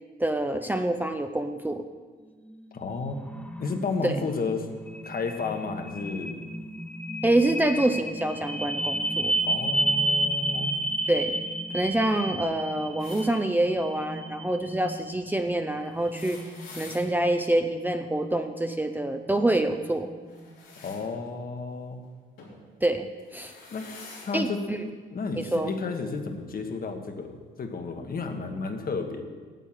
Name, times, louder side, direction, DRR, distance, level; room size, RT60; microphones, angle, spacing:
voice 1, 0.2-1.8 4.0-4.2 7.2-9.3 11.1-11.4 11.7-16.4 16.8-20.1 22.8-23.1 23.3-23.5 24.3-24.8 25.4-25.7, right 1 dB, 10° right, 6 dB, 0.6 m, -26 dB
sound 1, 2.5-20.5, right 1 dB, 5° left, 1.1 m, -32 dB
voice 2, 2.7-3.2 3.6-4.7 5.0-6.4 9.4-10.8 20.8-22.0 23.7-23.9 24.2-29.2, left 4 dB, 45° left, 5 dB, 1.4 m, -32 dB
sound 2, 13.0-13.3 15.9-17.0 20.3-21.0 22.4-22.6 23.2-24.3 25.4-25.5 26.7-26.8, left 3 dB, 90° left, 3.6 m, -46 dB
9.2 x 8.4 x 7.6 m, 1.5 s
cardioid pair, 90°, 20 cm